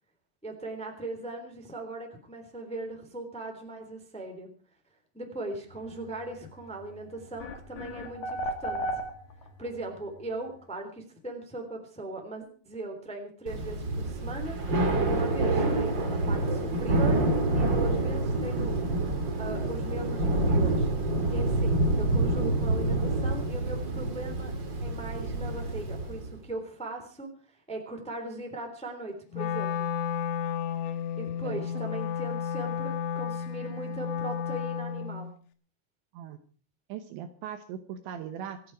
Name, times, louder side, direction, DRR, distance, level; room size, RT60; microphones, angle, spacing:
voice 1, 0.4-4.5 5.1-8.8 9.6-14.6 15.0-17.3 17.6-18.7 19.4-20.9 21.3-24.5 24.8-27.3 27.7-29.9 31.2-35.3, right 2 dB, ahead, 3 dB, 2.2 m, -39 dB
sound 1, 6.8-6.9 7.4-9.7, equal, 50° left, 2.6 m, -33 dB
Thunder / Rain, 13.5-26.4, right 2 dB, 45° right, 1.4 m, -27 dB
Wind instrument woodwind instrument, 29.3-35.3, left 8 dB, 75° left, 3.7 m, -32 dB
voice 2, 36.9-38.7, right 9 dB, 75° right, 9 dB, 3.0 m, -39 dB
26.5 x 8.9 x 4.7 m, 0.41 s
omnidirectional pair, 5.8 m